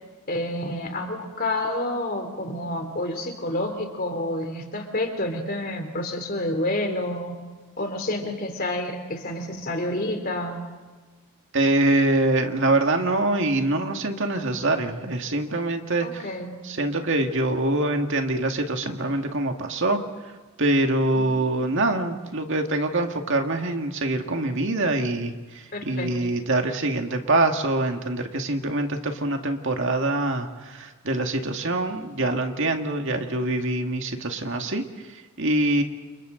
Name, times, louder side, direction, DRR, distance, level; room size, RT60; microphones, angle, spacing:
voice 1, 0.3-7.5 7.8-10.7 16.0-16.6 21.1-21.4 25.7-26.1, left 1 dB, 40° left, 4 dB, 3.4 m, -29 dB
voice 2, 11.5-16.3 16.6-20.3 20.6-35.8, right 2 dB, 60° right, 4 dB, 2.0 m, -24 dB
30.0 x 28.5 x 3.9 m, 1.3 s
head